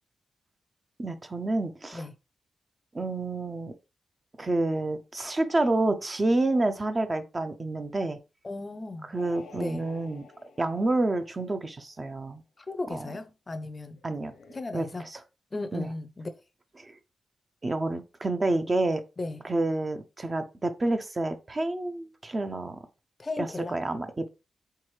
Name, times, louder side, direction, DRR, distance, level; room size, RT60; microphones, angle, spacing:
voice 1, 1.0-2.0 2.9-3.7 4.4-8.2 9.1-10.3 10.6-12.4 12.9-13.1 14.0-14.3 14.7-15.2 15.7-15.9 16.8-17.0 17.6-19.0 19.4-22.8 23.4-24.3, right 2 dB, 30° right, 0.5 m, -29 dB
voice 2, 8.4-9.2 9.5-9.8 12.7-14.0 14.5-15.0 15.5-16.3 19.2-19.4 23.2-23.8, left 2 dB, 30° left, 0.5 m, -35 dB
sound 1, 9.2-11.8 13.9-14.6, left 4 dB, 90° left, 0.9 m, -51 dB
4.6 x 3.5 x 3.2 m
cardioid pair, 100°, 0 cm